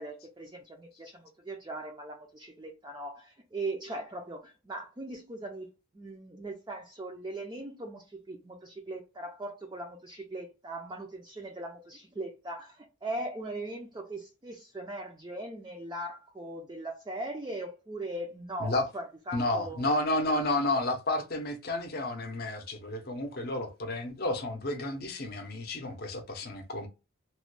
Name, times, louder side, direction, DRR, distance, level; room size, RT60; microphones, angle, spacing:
voice 1, 0.0-20.0, right 1 dB, 20° right, 0.4 m, -40 dB
voice 2, 19.3-26.9, left 2 dB, 45° left, 0.6 m, -31 dB
3.0 x 2.1 x 3.1 m
head